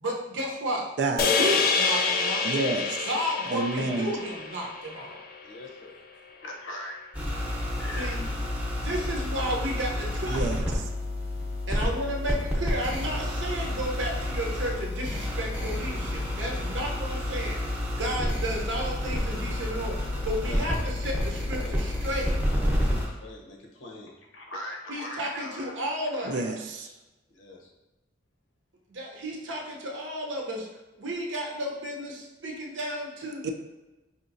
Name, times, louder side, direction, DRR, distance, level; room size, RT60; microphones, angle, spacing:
voice 1, 0.0-0.9 1.4-2.5 3.0-5.2 8.0-8.2 8.8-10.7 11.7-17.6 17.9-22.4 24.9-26.9 28.9-30.7 31.0-33.4, equal, 80° right, -1 dB, 0.8 m, -33 dB
voice 2, 1.0-1.5 2.4-3.0 3.5-4.1 10.3-10.6 26.3-26.9 33.4-33.5, right 3 dB, 60° right, 4 dB, 0.3 m, -29 dB
sound 1, 1.2-5.6, left 5 dB, 50° left, 0.4 m, -27 dB
voice 3, 5.4-6.0 6.4-7.1 7.8-8.3 20.4-20.6 21.6-21.8 23.1-25.7 26.1-26.4 27.3-27.7, left 1 dB, 85° left, 0 dB, 0.8 m, -41 dB
sound 2, 7.1-23.1, left 1 dB, 10° right, 0.7 m, -29 dB
5.0 x 2.8 x 2.6 m, 1.1 s
head